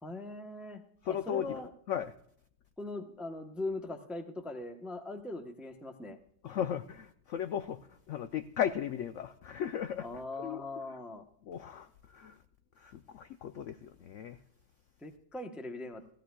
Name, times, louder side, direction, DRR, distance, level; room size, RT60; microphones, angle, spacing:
voice 1, 0.0-1.7 2.8-6.2 10.0-11.2 15.0-16.0, left 2 dB, ahead, 0.4 m, -41 dB
voice 2, 1.0-1.5 1.9-2.1 6.4-7.8 8.1-10.1 10.4-10.6 11.5-12.4 12.8-14.4, left 9 dB, 80° left, 0.6 m, -36 dB
16.0 x 14.0 x 2.3 m
omnidirectional pair, 1.8 m